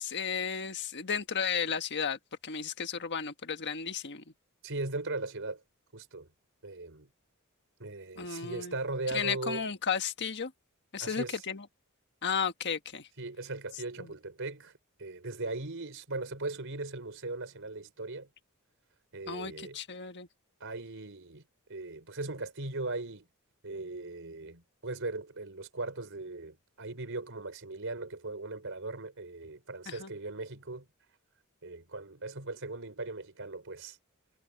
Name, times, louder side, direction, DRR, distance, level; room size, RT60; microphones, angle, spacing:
voice 1, 0.0-4.2 8.2-8.7 9.1-10.5 10.9-11.6 12.2-13.1 14.0-14.1 19.3-20.3 29.9-30.1, left 6 dB, 55° left, 1.5 m, -34 dB
voice 2, 4.6-5.6 5.9-6.3 6.6-7.1 7.8-9.6 11.0-11.4 13.2-14.7 15.0-18.3 19.1-19.8 20.6-21.4 21.7-23.3 23.6-30.9 31.6-34.0, right 2 dB, 60° right, 4.6 m, -38 dB
head